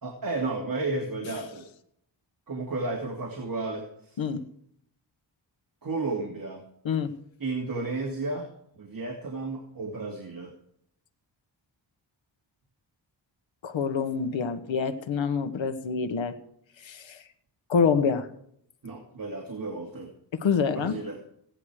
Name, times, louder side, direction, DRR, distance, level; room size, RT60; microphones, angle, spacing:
voice 1, 0.0-1.7 2.5-4.2 5.8-6.6 7.4-8.5 8.8-10.5 18.8-20.1 20.7-21.2, right 3 dB, 50° right, 1 dB, 2.7 m, -33 dB
voice 2, 13.6-16.3 16.8-17.2 17.7-18.3 20.4-20.9, left 6 dB, 90° left, 9 dB, 1.4 m, -26 dB
16.5 x 10.5 x 4.9 m, 0.69 s
cardioid pair, 85°, 45 cm